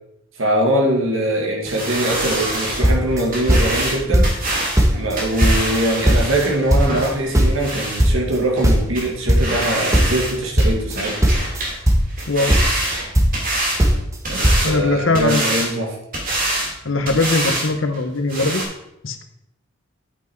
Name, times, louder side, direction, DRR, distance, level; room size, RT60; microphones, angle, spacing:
voice 1, 0.4-4.7 4.9-11.2 14.3-15.9, right 1 dB, 70° right, 0 dB, 1.9 m, -22 dB
sound 1, 1.7-8.0 8.5-8.6 8.9-9.1 9.4-10.3 10.6-11.8 12.1-13.8 14.2-14.8 15.1-15.7 16.1-16.7 17.1-17.7 17.9-18.0 18.3-18.6, right 1 dB, 45° right, 2.5 m, -25 dB
sound 2, 2.3-2.6 2.8-3.9 4.1-4.5 4.8-6.4 6.7-9.7 9.9-12.2 12.5-13.5 13.8-14.2 14.4-14.6, equal, 15° right, 1.1 m, -17 dB
voice 2, 12.3-12.6 14.6-15.5 16.8-18.6 19.0-19.2, left 2 dB, 65° left, 8 dB, 0.9 m, -20 dB
8.3 x 5.9 x 4.5 m, 0.82 s
head